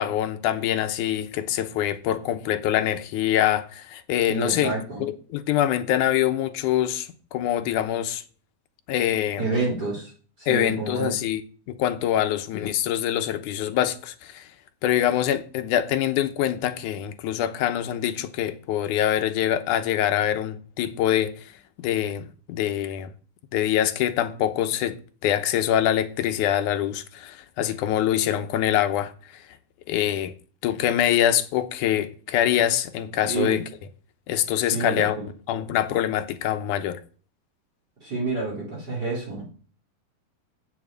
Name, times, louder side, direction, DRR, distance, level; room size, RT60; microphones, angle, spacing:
voice 1, 0.0-4.7 5.0-8.2 8.9-9.5 10.5-11.4 11.7-14.5 14.8-21.4 21.8-23.1 23.5-29.4 29.9-30.3 30.6-33.6 34.3-35.2 35.5-37.0, left 11 dB, 75° left, 2.1 m, -24 dB
voice 2, 4.3-5.1 9.4-10.1 10.4-11.1 33.2-33.6 34.7-35.2 38.0-39.5, right 3 dB, 30° right, 4.1 m, -28 dB
7.9 x 7.3 x 8.0 m
omnidirectional pair, 4.0 m